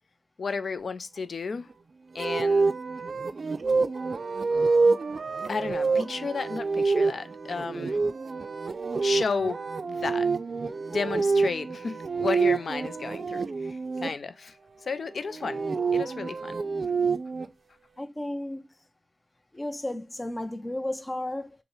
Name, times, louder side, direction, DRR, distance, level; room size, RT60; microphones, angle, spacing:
voice 1, 0.4-1.7 2.1-2.7 5.5-8.0 9.0-10.3 10.9-13.8 14.0-14.5 14.9-15.6 15.9-16.6, left 4 dB, 85° left, 0.3 m, -32 dB
sound 1, 2.2-14.1 15.2-17.5, right 4 dB, 70° right, 0.3 m, -27 dB
voice 2, 18.0-18.6 19.5-21.6, left 1 dB, 25° left, 0.5 m, -33 dB
5.3 x 2.0 x 3.0 m
wide cardioid pair, 75°, 0 cm